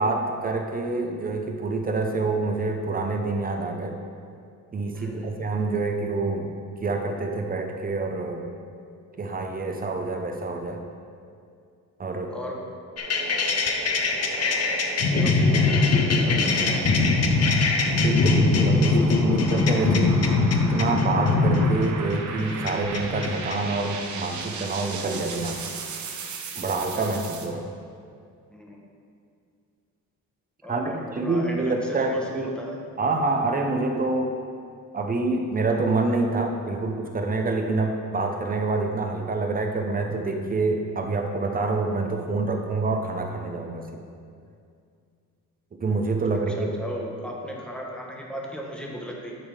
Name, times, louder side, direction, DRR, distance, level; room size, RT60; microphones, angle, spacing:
voice 1, 0.0-4.0 4.7-6.5 6.8-8.5 9.2-10.8 12.0-12.3 18.0-20.2 20.5-25.6 26.6-27.6 30.7-32.5 33.0-34.4 34.9-44.1 45.8-46.7, right 3 dB, 25° right, 3 dB, 0.7 m, -27 dB
voice 2, 4.9-5.3 12.3-12.6 15.1-17.0 28.5-28.8 30.6-32.8 46.5-49.3, equal, 5° left, -2 dB, 1.0 m, -37 dB
Long Pitched Panned Riser, 12.9-27.5, right 4 dB, 60° right, 0.8 m, -37 dB
sound 1, 13.0-23.5, left 3 dB, 50° left, 0.7 m, -22 dB
10.5 x 3.7 x 4.9 m, 2.3 s
cardioid pair, 135°, 33 cm